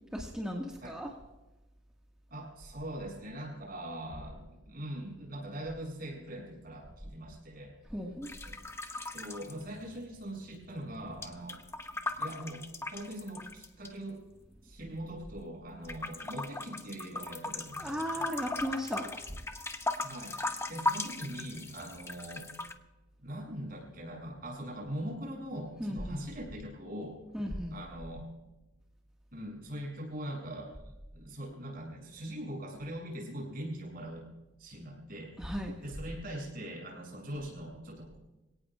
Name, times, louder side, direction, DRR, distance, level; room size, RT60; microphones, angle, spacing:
voice 1, 0.1-1.1 7.9-8.3 17.7-19.1 25.8-26.2 27.3-27.7 35.4-35.7, equal, 5° right, -2 dB, 1.7 m, -36 dB
voice 2, 2.3-7.7 8.4-8.6 9.1-11.6 12.2-12.6 12.9-14.2 14.6-18.3 20.0-22.5 23.2-27.2 27.7-28.3 29.3-30.7 31.1-34.3 34.6-35.5 35.8-38.2, right 1 dB, 50° right, -1 dB, 7.1 m, -42 dB
sound 1, 8.2-10.3 10.5-13.9 14.5-15.5 15.8-22.7, left 2 dB, 15° left, 0.9 m, -38 dB
26.5 x 17.5 x 2.4 m, 1.1 s
head